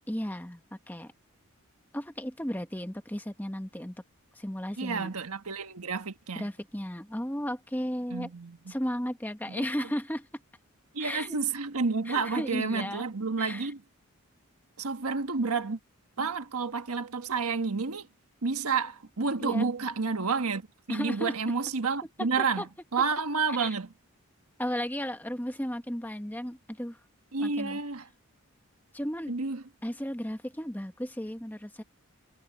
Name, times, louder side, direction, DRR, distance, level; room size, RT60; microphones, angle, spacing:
voice 1, 0.1-0.6 0.9-1.1 1.9-4.0 4.3-5.1 6.3-8.3 8.7-10.3 11.0-11.4 12.1-13.0 13.4-13.7 19.4-19.7 20.9-21.3 22.4-22.7 23.6-23.7 24.6-27.0 27.4-27.8 28.9-29.3 29.8-31.8, equal, 10° left, 1.2 m, -34 dB
voice 2, 4.8-6.4 8.1-8.7 9.5-9.9 10.9-13.8 14.8-15.8 16.2-18.1 18.4-22.6 22.9-23.9 27.3-28.1 29.3-29.6, right 4 dB, 85° right, 1.4 m, -30 dB
head